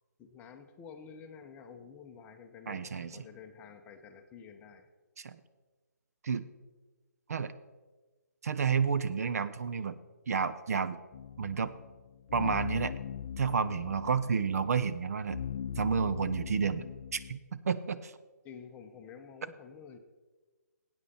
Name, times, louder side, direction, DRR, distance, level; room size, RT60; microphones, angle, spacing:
voice 1, 0.2-4.9 18.4-20.0, left 6 dB, 15° left, 6 dB, 0.8 m, -50 dB
voice 2, 2.7-3.2 5.2-5.4 6.2-6.4 7.3-7.5 8.4-10.0 10.3-11.0 11.4-11.7 12.3-12.9 13.4-15.4 15.8-16.9 17.1-18.1, right 6 dB, 60° right, 13 dB, 0.6 m, -30 dB
sound 1, 11.1-17.3, left 8 dB, 45° left, 0.7 m, -40 dB
14.0 x 8.9 x 4.2 m, 1.3 s
figure-of-eight pair, 150°, 10 cm